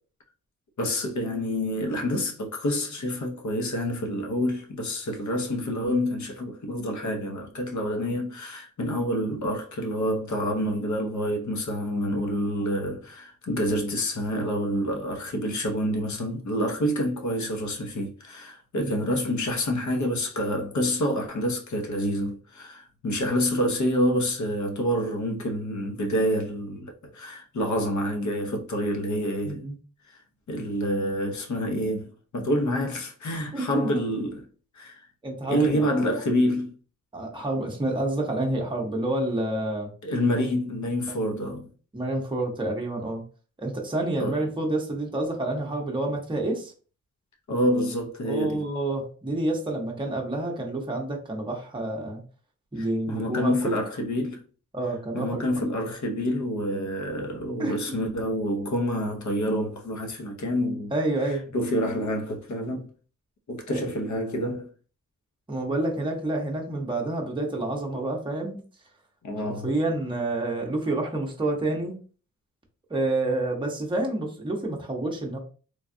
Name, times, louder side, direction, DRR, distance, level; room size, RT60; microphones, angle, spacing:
voice 1, 0.8-29.6 30.5-34.4 34.7-35.0 35.4-36.8 40.0-41.7 44.2-44.4 47.5-48.6 52.8-54.4 55.1-60.9 61.5-62.9 63.5-64.7 69.2-69.7, equal, 60° left, 0.9 m, -27 dB
voice 2, 29.4-29.8 33.5-34.0 35.2-35.9 37.1-39.9 41.1-41.2 41.9-43.3 43.6-46.7 48.2-52.2 52.7-53.8 54.7-55.7 57.6-57.8 60.9-61.5 63.7-63.8 65.5-68.6 69.4-72.0 72.9-75.4, right 2 dB, 15° right, 0.8 m, -28 dB
3.3 x 2.3 x 2.6 m
cardioid pair, 90°, 33 cm